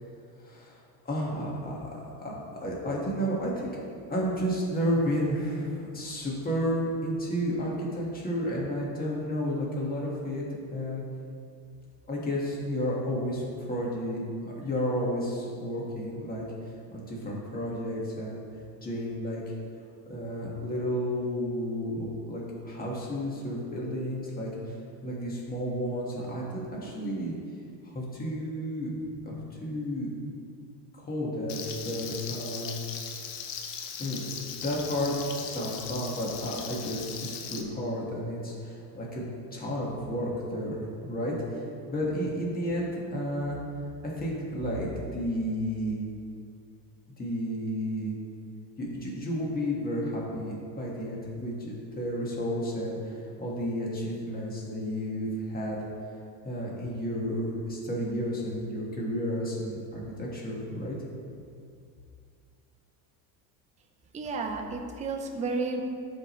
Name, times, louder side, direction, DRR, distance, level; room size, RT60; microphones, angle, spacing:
voice 1, 0.4-3.7 4.1-10.4 10.7-11.0 12.1-16.4 16.9-18.4 18.8-19.4 20.1-24.7 25.0-27.3 27.8-30.1 31.0-31.6 31.8-32.8 34.0-34.3 34.6-39.2 39.5-43.6 44.0-44.9 45.1-46.0 47.2-48.1 48.8-55.8 56.4-61.0, equal, 20° left, -4 dB, 1.7 m, -32 dB
Frying (food), 31.5-37.6, left 7 dB, 60° left, 0.9 m, -39 dB
voice 2, 64.1-65.8, right 3 dB, 15° right, 2 dB, 0.5 m, -32 dB
12.5 x 5.2 x 3.2 m, 2.4 s
supercardioid pair, 125°, 48 cm